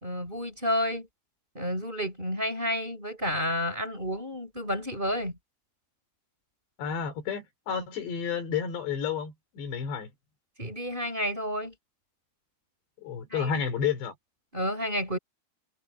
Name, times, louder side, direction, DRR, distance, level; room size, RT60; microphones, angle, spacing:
voice 1, 0.0-1.1 1.5-5.4 10.6-11.7 13.3-13.6 14.5-15.2, equal, 10° right, 4.6 m, -30 dB
voice 2, 6.8-10.1 13.0-14.1, left 7 dB, 85° left, 5.8 m, -31 dB
omnidirectional pair, 4.9 m